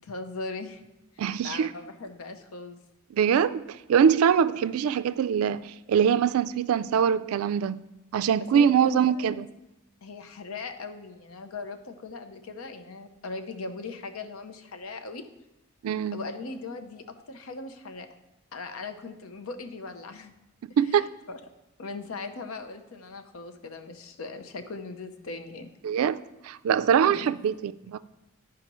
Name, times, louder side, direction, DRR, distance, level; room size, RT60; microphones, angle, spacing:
voice 1, 0.0-0.8 1.2-2.8 8.4-9.4 10.0-15.3 16.1-18.1 18.5-20.3 20.9-21.4 21.8-25.7 27.1-27.3, left 3 dB, 80° left, 0.6 m, -39 dB
voice 2, 1.2-1.7 3.1-3.6 3.9-9.5 15.8-16.2 20.8-21.1 25.8-26.2 26.4-28.0, right 7 dB, 85° right, 0.3 m, -23 dB
11.0 x 4.9 x 3.0 m
head